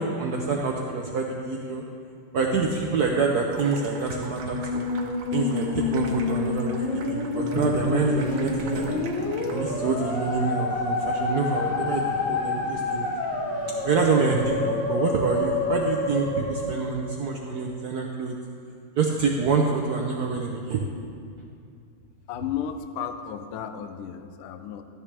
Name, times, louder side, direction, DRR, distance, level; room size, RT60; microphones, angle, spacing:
voice 1, 0.0-1.8 2.3-4.8 5.3-9.0 9.5-13.1 13.8-18.3 19.0-20.8, right 4 dB, 70° right, 0 dB, 0.9 m, -26 dB
Water tap faucet / Sink (filling or washing), 3.4-9.9, right 4 dB, 90° right, 1.8 m, -44 dB
Musical instrument, 4.2-17.6, left 3 dB, 65° left, 1.7 m, -28 dB
Toilet flush, 7.3-16.4, right 1 dB, 5° left, 1.7 m, -38 dB
voice 2, 22.3-24.8, left 8 dB, 85° left, 8 dB, 1.5 m, -33 dB
13.0 x 10.0 x 3.4 m, 2.4 s
omnidirectional pair, 2.4 m